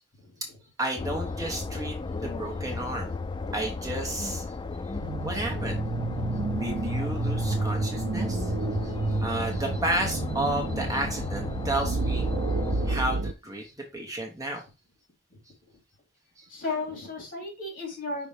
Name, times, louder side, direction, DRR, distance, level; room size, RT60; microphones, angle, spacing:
voice 1, 0.2-0.6 15.3-15.4 16.5-18.3, left 3 dB, 50° left, 0 dB, 4.0 m, -36 dB
voice 2, 0.8-3.1 3.5-4.5 5.2-5.8 6.5-8.6 8.8-12.4 12.7-14.6 16.4-16.5, right 1 dB, 20° right, 2 dB, 1.2 m, -32 dB
sound 1, 1.0-13.0, left 3 dB, 25° left, 0.4 m, -34 dB
sound 2, 5.0-13.3, right 3 dB, 75° right, 0.5 m, -30 dB
5.7 x 3.9 x 5.0 m, 0.29 s
head